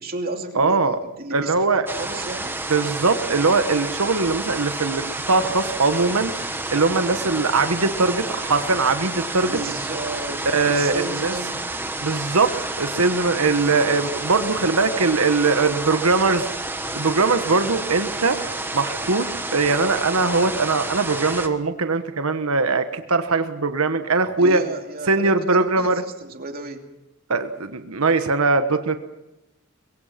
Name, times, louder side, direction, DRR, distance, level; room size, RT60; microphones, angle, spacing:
voice 1, 0.0-2.6 9.4-11.6 24.4-26.8, right 2 dB, 45° right, 3 dB, 2.7 m, -33 dB
voice 2, 0.5-1.0 1.3-1.8 2.7-6.3 6.7-9.6 10.4-11.3 12.0-16.5 16.9-18.4 18.7-19.3 19.5-24.6 25.1-26.0 27.3-29.0, right 3 dB, 90° right, 9 dB, 1.3 m, -21 dB
sound 1, 1.9-21.5, right 2 dB, 10° right, 1.3 m, -30 dB
24.0 x 22.5 x 5.9 m, 0.95 s
head